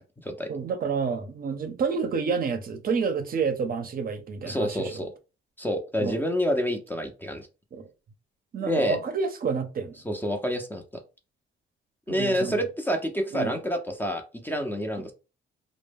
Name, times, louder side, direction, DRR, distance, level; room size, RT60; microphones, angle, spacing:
voice 1, 0.5-4.9 6.0-6.2 7.7-7.9 8.5-10.0 12.1-12.6 13.3-13.5, right 5 dB, 45° right, 0.6 m, -29 dB
voice 2, 4.4-5.1 5.6-7.5 8.6-9.0 10.0-10.8 12.1-15.1, equal, 10° left, 0.5 m, -28 dB
2.1 x 2.0 x 3.3 m
cardioid pair, 90°, 20 cm